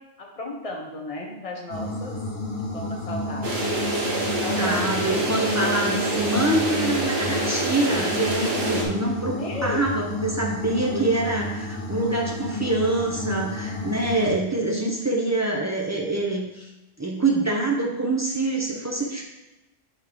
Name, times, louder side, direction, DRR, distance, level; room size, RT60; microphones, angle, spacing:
voice 1, 0.2-2.2 2.7-3.7 4.2-5.3 9.4-9.9 10.9-11.1, left 2 dB, 30° left, -1 dB, 1.0 m, -34 dB
sound 1, 1.7-14.3, left 1 dB, 75° left, 1.7 m, -31 dB
sound 2, 3.4-8.8, right 1 dB, 55° right, 1.3 m, -26 dB
voice 2, 4.6-16.7 17.0-19.2, right 2 dB, 20° right, -1 dB, 0.5 m, -25 dB
4.4 x 4.2 x 5.0 m, 1.0 s
omnidirectional pair, 1.3 m